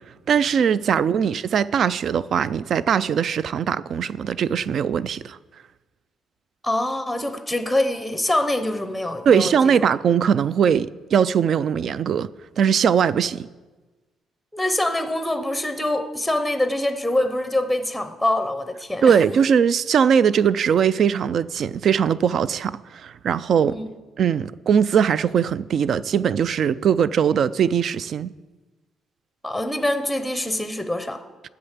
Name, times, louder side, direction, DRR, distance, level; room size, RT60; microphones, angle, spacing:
voice 1, 0.3-5.4 9.3-12.3 12.6-13.5 19.0-23.8 24.2-28.3, right 7 dB, 50° right, 0.3 m, -20 dB
voice 2, 0.9-1.3 6.6-9.9 14.5-19.2 23.6-23.9 29.4-31.2, left 1 dB, ahead, 0.7 m, -25 dB
10.0 x 7.8 x 7.3 m
cardioid pair, 145°, 0 cm